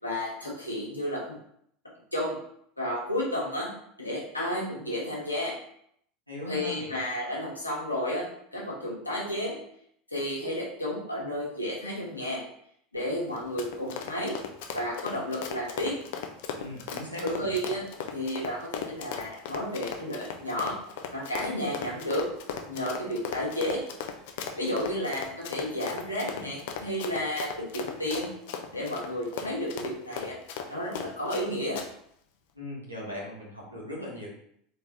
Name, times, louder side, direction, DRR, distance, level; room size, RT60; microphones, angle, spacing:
voice 1, 0.0-1.4 2.1-2.4 2.8-3.7 4.0-5.5 6.5-9.6 10.1-12.4 12.9-14.4 14.7-16.0 17.2-17.8 18.1-20.8 21.1-22.3 22.7-23.8 24.6-28.3 28.7-30.4 30.7-31.8, equal, 85° left, -5 dB, 1.2 m, -32 dB
voice 2, 6.3-6.9 16.6-17.5 32.5-34.3, left 1 dB, 90° right, -5 dB, 1.4 m, -38 dB
Run, 13.3-31.5 31.8-31.9, left 7 dB, 55° left, 0.5 m, -37 dB
4.0 x 3.2 x 3.7 m, 0.70 s
figure-of-eight pair, 75°, 0 cm